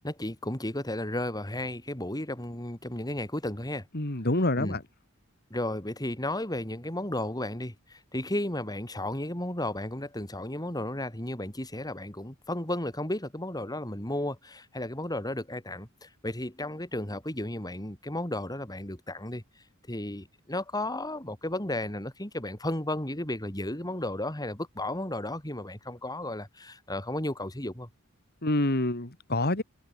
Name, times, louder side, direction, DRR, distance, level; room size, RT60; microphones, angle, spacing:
voice 1, 0.0-3.9 4.6-4.8 5.5-19.4 19.9-27.9, left 1 dB, 20° left, 5.1 m, -34 dB
voice 2, 3.9-4.8 28.4-29.6, left 1 dB, 50° left, 2.7 m, -27 dB
head